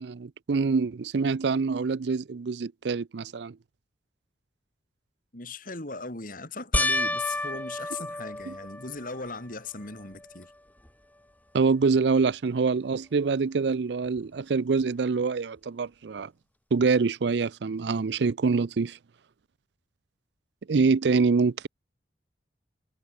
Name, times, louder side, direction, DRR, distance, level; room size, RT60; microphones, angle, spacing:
voice 1, 0.0-3.5 8.5-8.6 11.5-16.3 16.7-19.0 20.7-21.7, right 4 dB, 70° right, 0.5 m, -25 dB
voice 2, 5.3-10.5, left 3 dB, 50° left, 4.0 m, -38 dB
sound 1, 6.7-9.3 9.9-10.5 10.9-11.0 14.2-14.3, left 1 dB, 10° left, 2.1 m, -30 dB
head